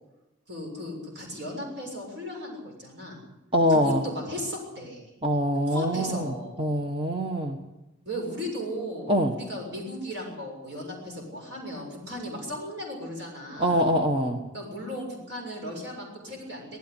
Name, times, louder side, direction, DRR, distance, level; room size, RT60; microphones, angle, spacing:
voice 1, 0.5-3.2 3.7-5.1 5.7-6.6 8.1-13.8 14.5-16.8, equal, 65° right, 0 dB, 6.9 m, -36 dB
voice 2, 3.5-4.0 5.2-7.6 9.1-9.3 13.6-14.4, equal, 25° right, 4 dB, 1.4 m, -24 dB
19.0 x 15.0 x 10.0 m, 0.96 s
head